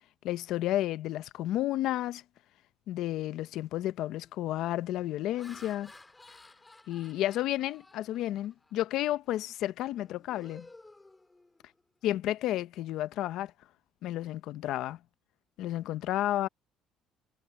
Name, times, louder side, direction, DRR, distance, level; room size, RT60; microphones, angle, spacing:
voice 1, 0.2-2.2 2.9-5.9 6.9-10.7 12.0-13.5 14.0-15.0 15.6-16.5, left 13 dB, 65° left, 0.7 m, -32 dB
Laughter, 3.5-3.6 4.1-4.4 5.0-8.8 9.3-9.5 9.9-11.8, left 2 dB, 10° left, 2.5 m, -55 dB
cardioid pair, 155°, 0 cm